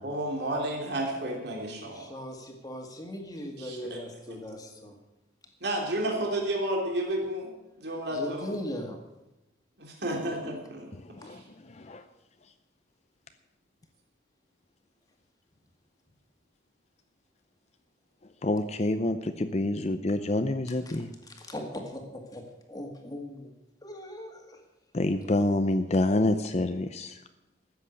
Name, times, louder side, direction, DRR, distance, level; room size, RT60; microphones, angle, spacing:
voice 1, 0.0-2.1 3.6-4.0 4.3-4.5 5.6-7.5 7.8-8.5 9.8-10.9 11.2-11.4, right 1 dB, 55° right, 0 dB, 3.1 m, -31 dB
voice 2, 1.9-5.0 8.1-9.0 20.9-21.0 21.3-23.5 23.8-24.6, left 1 dB, 20° left, 2 dB, 2.0 m, -39 dB
voice 3, 11.0-12.0 18.4-21.1 24.9-27.2, left 2 dB, 35° left, 9 dB, 0.6 m, -27 dB
14.0 x 8.0 x 8.2 m, 0.97 s
head